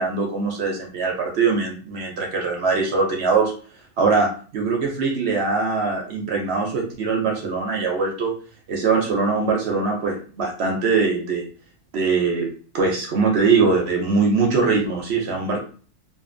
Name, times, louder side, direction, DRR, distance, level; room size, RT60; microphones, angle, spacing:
voice 1, 0.0-3.5 4.0-8.3 8.7-11.4 11.9-12.5 12.7-15.6, right 4 dB, 65° right, 0 dB, 0.6 m, -22 dB
2.5 x 2.5 x 2.5 m, 0.41 s
omnidirectional pair, 1.6 m